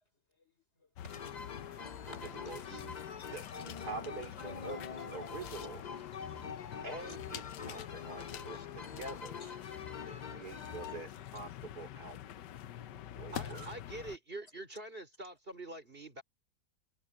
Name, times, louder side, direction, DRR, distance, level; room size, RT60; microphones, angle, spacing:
sound 1, 1.0-14.2, left 11 dB, 75° left, 1.4 m, -47 dB
voice 1, 1.0-1.4 1.8-2.3 2.7-3.3 5.4-5.5 8.5-8.7 9.4-9.5 10.2-10.6 12.7-13.3, left 1 dB, 35° left, 5.0 m, -58 dB
sound 2, 1.1-11.0, left 6 dB, 55° left, 0.4 m, -45 dB
voice 2, 2.1-3.0 3.3-5.8 6.8-9.4 10.1-12.2 13.2-13.7, right 3 dB, 60° right, 3.6 m, -46 dB
voice 3, 13.3-16.2, right 2 dB, 30° right, 5.0 m, -45 dB
omnidirectional pair, 1.9 m